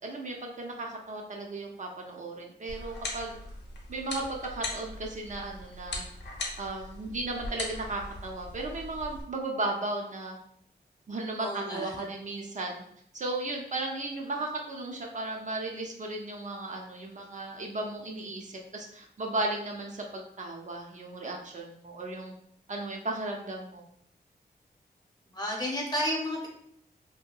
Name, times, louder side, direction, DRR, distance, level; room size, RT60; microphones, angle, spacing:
voice 1, 0.0-3.4 3.9-6.0 6.6-10.4 11.1-12.8 13.1-22.3 22.7-23.8, right 2 dB, 45° right, 0 dB, 0.4 m, -35 dB
sound 1, 2.7-9.2, left 2 dB, 85° left, 0.6 m, -40 dB
voice 2, 11.4-11.9 25.3-26.5, equal, 25° left, -2 dB, 0.8 m, -31 dB
2.7 x 2.6 x 2.2 m, 0.70 s
wide cardioid pair, 110°, 17 cm